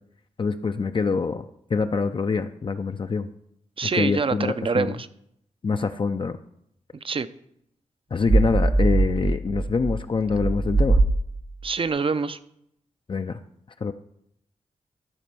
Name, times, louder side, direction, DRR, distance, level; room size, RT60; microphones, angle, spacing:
voice 1, 0.4-1.4 1.7-3.3 3.9-4.9 5.6-6.4 8.1-11.0 13.1-13.4 13.8-13.9, left 4 dB, 40° left, 8 dB, 0.5 m, -25 dB
voice 2, 3.8-5.1 7.0-7.3 11.6-12.4, right 5 dB, 45° right, 14 dB, 0.6 m, -25 dB
sound 1, 8.2-11.7, right 2 dB, 85° right, 2.2 m, -22 dB
12.5 x 4.2 x 6.9 m, 0.74 s
cardioid pair, 55°, 13 cm